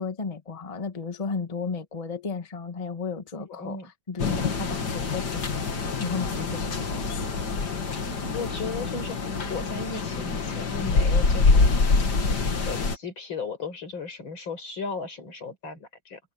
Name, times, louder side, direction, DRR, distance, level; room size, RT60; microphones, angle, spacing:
voice 1, 0.0-5.7 6.0-7.3, left 5 dB, 20° left, 1.3 m, -34 dB
voice 2, 3.5-3.9 4.2-4.5 8.3-9.2 9.5-11.8 12.7-16.2, left 4 dB, 85° left, 5.9 m, -35 dB
sound 1, 4.2-13.0, left 4 dB, 60° left, 2.7 m, -25 dB
omnidirectional pair, 2.1 m